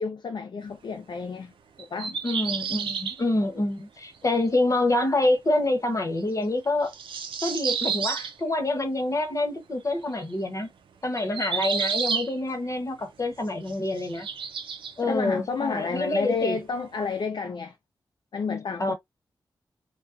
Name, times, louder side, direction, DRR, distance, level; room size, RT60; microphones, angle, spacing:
voice 1, 0.0-1.5 1.9-2.2 15.0-17.7 18.3-18.9, left 5 dB, 60° left, 0.4 m, -30 dB
sound 1, 1.8-3.2 4.5-4.6 6.8-8.3 10.3-10.4 11.2-12.4 13.6-14.9, right 6 dB, 85° right, 0.4 m, -30 dB
voice 2, 2.2-6.9 7.4-10.7 11.0-14.3 15.0-16.6 18.8-18.9, left 2 dB, 40° left, 1.0 m, -26 dB
2.3 x 2.2 x 2.5 m
cardioid pair, 40°, 9 cm